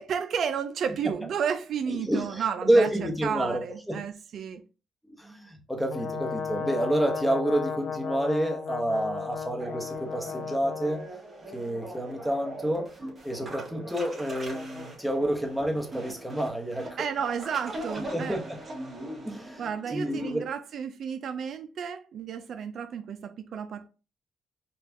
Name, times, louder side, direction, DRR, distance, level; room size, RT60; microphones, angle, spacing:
voice 1, 0.0-2.9 3.2-4.6 17.0-18.4 19.6-23.9, right 7 dB, 65° right, 0.3 m, -32 dB
voice 2, 1.9-4.0 5.2-11.0 11.5-12.9 13.2-17.1 18.1-18.6 19.3-20.4, right 1 dB, ahead, 0.9 m, -29 dB
Brass instrument, 5.9-11.1, left 6 dB, 55° left, 0.4 m, -34 dB
sound 1, 9.6-20.4, right 1 dB, 35° right, 1.4 m, -41 dB
4.1 x 2.3 x 2.7 m
cardioid pair, 90°, 0 cm